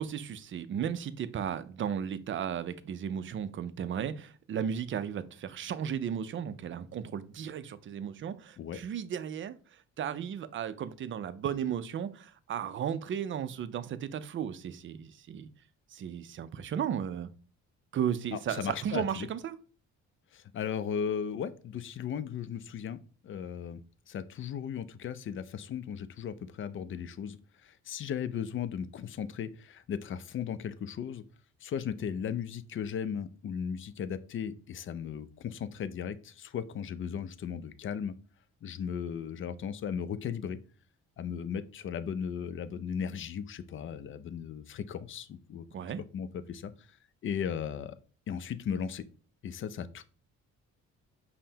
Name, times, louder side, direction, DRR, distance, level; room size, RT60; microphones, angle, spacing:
voice 1, 0.0-15.5 15.9-17.3 17.9-19.5 45.7-46.0, right 8 dB, 40° right, 0.4 m, -35 dB
voice 2, 18.3-19.3 20.3-31.2 31.6-38.1 38.6-40.6 41.2-45.9 46.1-47.0 47.2-48.0 48.3-49.0 49.4-50.0, left 7 dB, 45° left, 0.4 m, -36 dB
5.4 x 2.1 x 2.8 m
cardioid pair, 90°, 30 cm